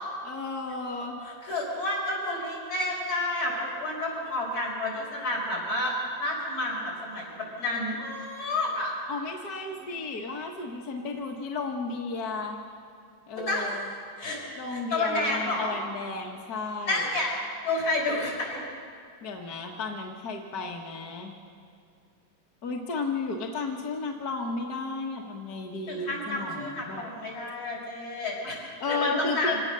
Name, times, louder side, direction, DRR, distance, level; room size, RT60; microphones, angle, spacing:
voice 1, 0.2-1.2 9.1-12.6 13.3-13.9 14.6-17.0 19.2-21.4 22.6-27.1 28.8-29.5, left 3 dB, 50° left, 1 dB, 1.8 m, -33 dB
voice 2, 1.2-8.9 9.8-9.9 13.3-13.7 14.2-14.4 14.7-15.7 16.9-17.3 17.6-18.6 25.9-29.6, left 2 dB, 75° left, -4 dB, 7.2 m, -30 dB
26.0 x 18.0 x 6.8 m, 2.3 s
omnidirectional pair, 2.3 m